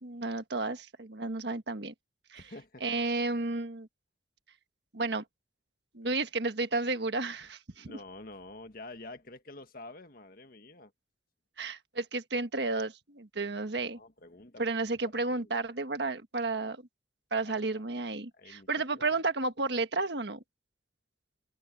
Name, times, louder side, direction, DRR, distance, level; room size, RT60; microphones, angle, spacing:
voice 1, 0.0-1.9 2.3-2.4 2.8-3.9 4.9-5.2 5.9-7.9 11.6-14.0 14.6-16.8 17.3-20.4, right 3 dB, 65° right, 1.5 m, -32 dB
voice 2, 2.3-2.8 7.8-10.9 13.6-14.9 15.3-15.5 17.4-17.8 18.3-19.1, left 2 dB, 50° left, 1.7 m, -49 dB
open air
head